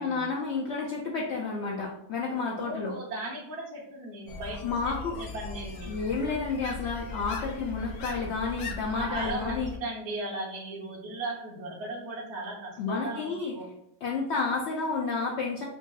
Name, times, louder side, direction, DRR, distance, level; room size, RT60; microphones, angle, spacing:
voice 1, 0.0-2.9 4.6-5.2 5.9-9.7 12.8-13.5 14.0-15.7, left 4 dB, 65° left, -1 dB, 0.7 m, -30 dB
voice 2, 2.5-6.1 8.9-13.7, right 2 dB, 55° right, -3 dB, 1.2 m, -37 dB
sound 1, 4.3-9.8, left 4 dB, 85° left, 1.0 m, -39 dB
5.2 x 2.3 x 2.3 m, 0.78 s
omnidirectional pair, 1.5 m